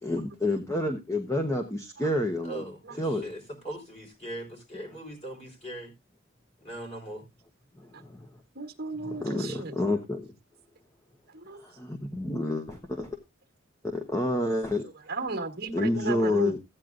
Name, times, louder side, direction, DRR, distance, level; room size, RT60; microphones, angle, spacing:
voice 1, 0.0-2.6 3.0-3.3 7.8-8.3 9.0-10.3 11.6-13.1 13.9-14.9 15.7-16.6, left 1 dB, 15° left, 1.0 m, -29 dB
voice 2, 2.4-5.9 6.6-7.3, right 1 dB, 30° left, 4.6 m, -40 dB
voice 3, 8.5-9.7 11.3-11.6 15.1-16.5, right 3 dB, 50° right, 1.4 m, -34 dB
15.0 x 9.2 x 2.5 m
head